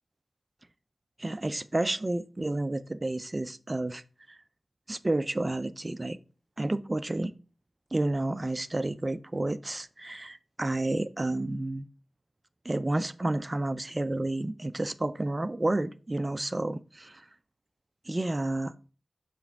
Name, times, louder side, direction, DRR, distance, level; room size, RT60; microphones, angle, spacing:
voice 1, 1.2-4.0 4.3-4.4 4.9-6.2 6.6-7.3 7.9-11.8 12.6-17.2 18.1-18.7, right 2 dB, 35° right, 0.5 m, -30 dB
6.7 x 5.0 x 3.5 m
cardioid pair, 40°, 0 cm